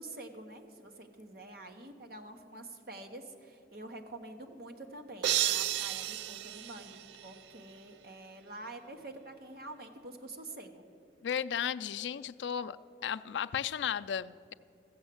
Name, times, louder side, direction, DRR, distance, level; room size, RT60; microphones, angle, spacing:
voice 1, 0.0-10.8, right 2 dB, 55° right, 5 dB, 1.1 m, -47 dB
sound 1, 5.2-7.6, right 12 dB, 80° right, 0.3 m, -33 dB
voice 2, 11.2-12.8 13.0-14.5, left 8 dB, 80° left, 12 dB, 0.4 m, -34 dB
15.0 x 7.2 x 7.7 m, 2.5 s
head